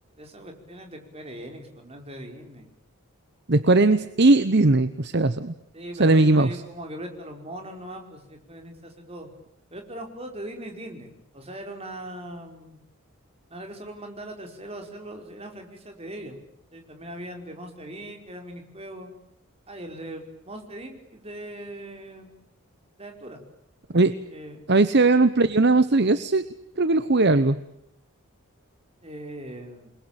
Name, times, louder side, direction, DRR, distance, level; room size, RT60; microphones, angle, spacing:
voice 1, 0.2-2.7 5.7-9.3 9.7-12.8 13.5-16.4 16.7-19.1 19.7-22.3 23.0-23.4 24.3-24.6 29.0-29.9, right 1 dB, 30° right, 4 dB, 5.0 m, -40 dB
voice 2, 3.5-5.5 6.0-6.5 23.9-24.1 24.7-26.5 26.8-27.6, right 2 dB, 50° right, 13 dB, 1.0 m, -19 dB
28.5 x 21.5 x 9.0 m, 0.75 s
head